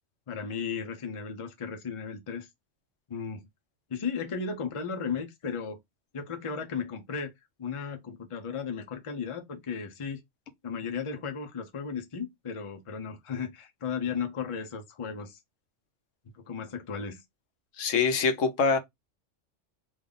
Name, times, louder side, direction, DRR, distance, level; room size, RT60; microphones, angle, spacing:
voice 1, 0.3-2.5 3.1-3.5 3.9-5.8 6.1-7.3 7.6-10.2 10.6-15.4 16.4-17.2, left 6 dB, 35° left, 0.6 m, -35 dB
voice 2, 17.8-18.8, left 5 dB, 80° left, 1.1 m, -24 dB
3.4 x 2.4 x 3.8 m
omnidirectional pair, 1.3 m